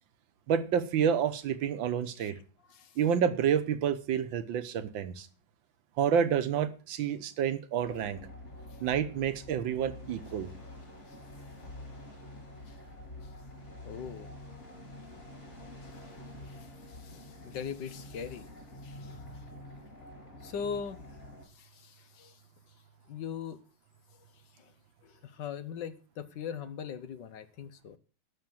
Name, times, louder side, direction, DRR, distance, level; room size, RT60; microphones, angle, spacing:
voice 1, 0.5-2.3 3.0-5.3 6.0-8.2 8.8-10.5, right 8 dB, 80° right, 1.7 m, -29 dB
voice 2, 2.2-3.0 8.7-8.8 11.1-11.2 12.7-12.8 13.2-13.3 13.8-14.3 15.8-18.5 18.8-19.4 20.4-21.0 21.4-22.4 23.0-23.6 24.1-24.2 24.5-24.7 25.0-28.0, left 7 dB, 70° left, 1.6 m, -41 dB
sound 1, 7.8-21.4, left 1 dB, 35° left, 5.5 m, -47 dB
12.0 x 5.9 x 7.7 m
omnidirectional pair, 2.1 m